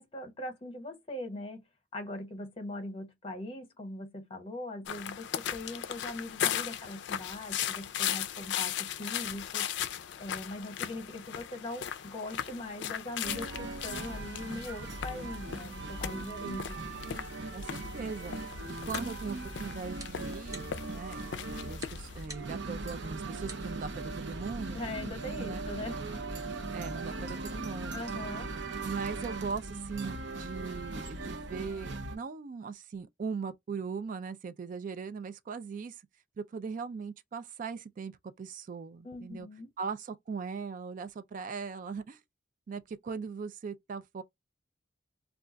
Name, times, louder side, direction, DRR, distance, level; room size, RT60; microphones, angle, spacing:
voice 1, 0.0-1.6 1.9-9.7 10.2-16.8 24.7-26.1 27.9-28.5 39.0-39.7, left 1 dB, 30° left, 1.0 m, -41 dB
sound 1, 4.9-22.2, left 9 dB, 70° left, 0.4 m, -38 dB
sound 2, 13.2-32.2, right 2 dB, 85° right, 0.7 m, -39 dB
voice 2, 17.5-18.4 18.7-21.2 21.6-24.8 25.4-25.7 26.7-28.1 28.8-36.0 36.4-38.1 38.4-39.5 39.8-42.2 42.7-44.2, right 5 dB, 45° right, 0.3 m, -39 dB
sound 3, 18.6-25.1, right 2 dB, 20° right, 0.7 m, -52 dB
2.4 x 2.2 x 3.7 m
head